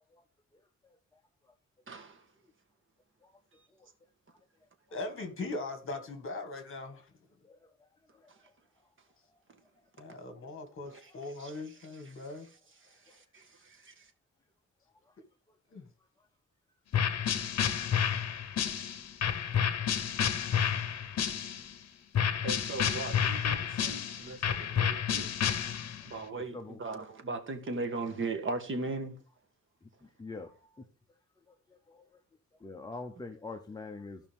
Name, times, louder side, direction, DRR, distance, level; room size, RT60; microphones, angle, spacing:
voice 1, 1.9-2.2 10.9-11.6 12.8-14.1 22.4-25.3 26.0-29.2, right 3 dB, 45° right, 1.5 m, -38 dB
voice 2, 4.9-7.1 10.0-12.5 15.7-15.9, left 2 dB, 45° left, 2.0 m, -40 dB
sound 1, 16.9-21.7 22.1-26.1, left 8 dB, 60° left, 1.0 m, -30 dB
voice 3, 26.3-26.8 30.2-30.8 31.9-32.0 32.6-34.2, left 3 dB, 15° left, 0.7 m, -43 dB
15.5 x 5.5 x 3.5 m
wide cardioid pair, 170°, 29 cm